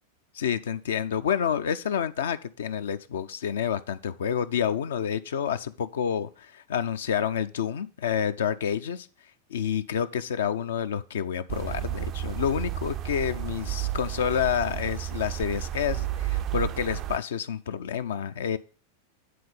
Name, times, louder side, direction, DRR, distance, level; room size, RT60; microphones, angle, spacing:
voice 1, 0.3-9.1 9.5-18.6, left 8 dB, 60° left, 11 dB, 0.4 m, -29 dB
sound 1, 11.5-17.2, right 12 dB, 35° right, 0.4 m, -32 dB
9.4 x 3.9 x 6.6 m, 0.36 s
figure-of-eight pair, 90°, 0 cm